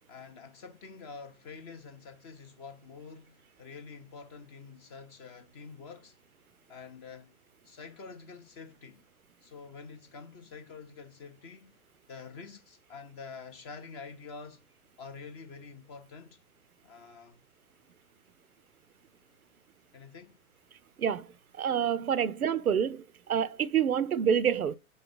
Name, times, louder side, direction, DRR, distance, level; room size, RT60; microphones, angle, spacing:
voice 1, 0.1-6.2 6.7-7.3 7.6-9.0 9.4-11.8 12.1-14.6 15.0-16.4 16.8-17.4 19.9-20.4, left 5 dB, 20° left, 0.5 m, -47 dB
voice 2, 21.0-21.3 21.6-24.8, right 8 dB, 80° right, 0.5 m, -27 dB
5.2 x 4.0 x 5.1 m
figure-of-eight pair, 110°, 43 cm